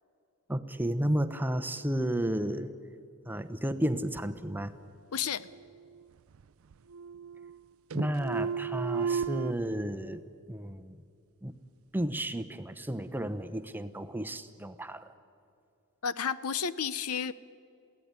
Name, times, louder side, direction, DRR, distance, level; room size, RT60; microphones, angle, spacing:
voice 1, 0.5-2.7 3.3-4.7 7.9-11.0 11.4-11.5 11.9-15.1, right 1 dB, 10° right, 9 dB, 0.8 m, -32 dB
voice 2, 5.1-5.5 16.0-17.3, left 7 dB, 85° left, 16 dB, 0.7 m, -31 dB
sound 1, 5.4-6.4 6.7-7.6 7.9-9.5, right 6 dB, 70° right, 0.4 m, -34 dB
22.5 x 16.5 x 9.6 m, 2.6 s
head